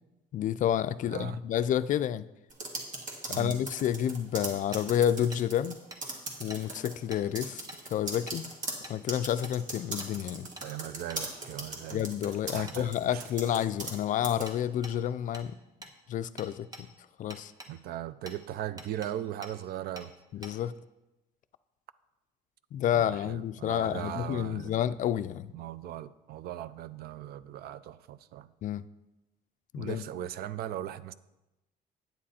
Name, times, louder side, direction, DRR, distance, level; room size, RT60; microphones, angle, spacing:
voice 1, 0.3-2.3 3.3-5.8 6.4-7.6 7.9-8.4 8.9-10.5 11.9-15.6 16.1-16.9 17.2-17.5 20.3-20.7 22.7-25.5 28.6-28.8 29.7-30.0, left 10 dB, 50° left, 14 dB, 0.4 m, -29 dB
voice 2, 1.0-1.4 3.3-3.6 10.6-12.1 12.5-13.3 17.7-20.1 22.9-24.7 25.5-28.5 29.8-31.1, right 12 dB, 65° right, 16 dB, 0.4 m, -39 dB
sound 1, 2.5-5.7 6.0-6.9 7.3-14.0 14.2-14.5, right 2 dB, 50° right, 1.8 m, -39 dB
Hammer, 4.7-4.8 5.3-5.4 5.9-6.0 6.5-6.6 7.1-7.2 7.7-7.8 8.3-8.4 8.8-9.0 9.4-9.6 10.0-10.1 10.6-10.7 11.1-11.2 12.7-12.8 14.5-14.6 14.8-15.0 15.3-15.5 15.8-15.9 16.4-16.8 17.3-17.7 18.3-18.4 18.8-19.1 19.4-19.5 20.0-20.1 20.4-20.5, right 1 dB, 20° right, 1.2 m, -46 dB
9.2 x 7.5 x 4.3 m, 0.99 s
cardioid pair, 110°, 17 cm